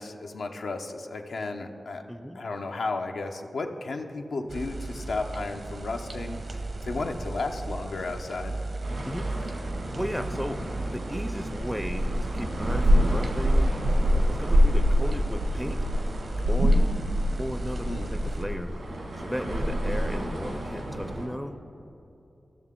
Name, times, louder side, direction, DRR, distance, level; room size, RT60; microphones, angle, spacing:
voice 1, 0.0-2.0 2.3-8.6 17.8-18.1, left 3 dB, 85° left, 3 dB, 0.6 m, -33 dB
voice 2, 2.1-2.4 9.0-15.8 16.5-18.7 19.2-21.6, equal, ahead, 8 dB, 0.4 m, -36 dB
sound 1, 4.5-18.4, right 2 dB, 65° right, 0.7 m, -36 dB
sound 2, 8.8-21.3, equal, 90° right, 1.9 m, -26 dB
14.5 x 6.5 x 3.6 m, 2.8 s
cardioid pair, 60°, 0 cm